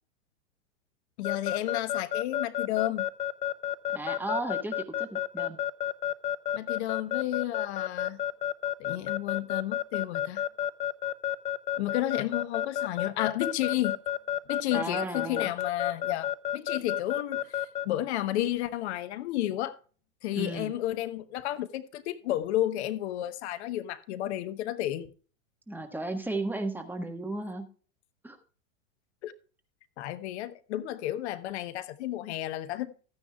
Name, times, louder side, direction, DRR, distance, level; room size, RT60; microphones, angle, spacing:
voice 1, 1.2-3.1 6.5-8.2 8.8-10.4 11.8-14.0 14.5-19.8 20.2-25.1 29.2-29.3 30.0-32.9, left 14 dB, 55° left, 1.0 m, -32 dB
Keyboard (musical) / Alarm, 1.2-17.9, left 11 dB, 15° left, 0.5 m, -30 dB
voice 2, 3.9-5.6 14.7-15.5 20.3-20.7 25.7-27.7 28.2-28.4, right 2 dB, 5° right, 1.3 m, -34 dB
14.5 x 9.6 x 2.3 m
hypercardioid pair, 115°, 40 cm